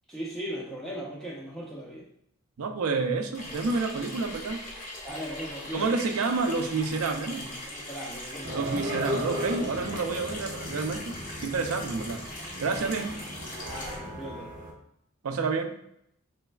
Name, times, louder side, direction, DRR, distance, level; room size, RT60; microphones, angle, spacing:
voice 1, 0.1-2.1 5.0-6.0 7.6-8.6 11.5-11.6 13.7-14.5, equal, ahead, -5 dB, 0.4 m, -38 dB
voice 2, 2.6-4.6 5.7-7.5 8.5-12.2 12.6-13.2 15.2-15.8, right 4 dB, 75° right, 6 dB, 0.4 m, -29 dB
Water tap faucet / Sink (filling or washing), 3.3-14.0, left 1 dB, 35° left, 0.7 m, -40 dB
sound 1, 8.4-14.7, equal, 35° right, 0.6 m, -36 dB
3.2 x 3.2 x 2.2 m, 0.73 s
head